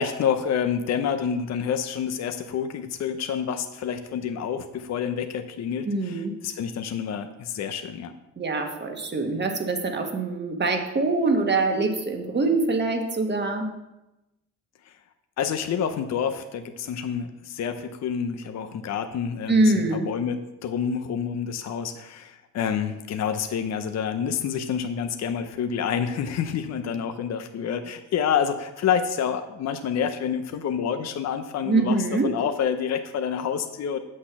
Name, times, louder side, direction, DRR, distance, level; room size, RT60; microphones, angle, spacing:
voice 1, 0.0-8.1 14.9-15.0 15.4-34.0, left 7 dB, 60° left, 8 dB, 0.7 m, -28 dB
voice 2, 5.8-6.3 8.4-13.7 19.5-20.0 31.6-32.3, right 3 dB, 35° right, 4 dB, 1.5 m, -24 dB
7.8 x 6.4 x 6.0 m, 0.97 s
cardioid pair, 90°, 30 cm